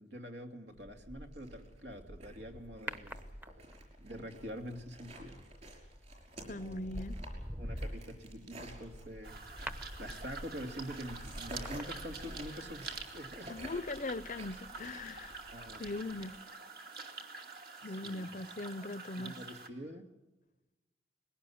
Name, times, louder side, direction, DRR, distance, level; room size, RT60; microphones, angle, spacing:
voice 1, 0.0-3.2 4.0-5.4 6.5-7.0 7.5-9.4 10.0-13.6 15.5-15.9 17.8-18.3 19.2-20.1, equal, 75° right, 2.6 m, -46 dB
sound 1, 0.7-16.4, right 1 dB, 40° right, 5.7 m, -52 dB
sound 2, 2.9-3.9 5.8-6.0 6.5-12.7 13.0-13.1, equal, 10° right, 0.9 m, -44 dB
voice 2, 6.5-7.2 13.5-15.3 15.8-16.3 17.8-19.4, left 2 dB, 45° left, 0.6 m, -40 dB
sound 3, 9.2-19.7, right 4 dB, 55° right, 2.4 m, -47 dB
21.0 x 17.5 x 8.7 m
head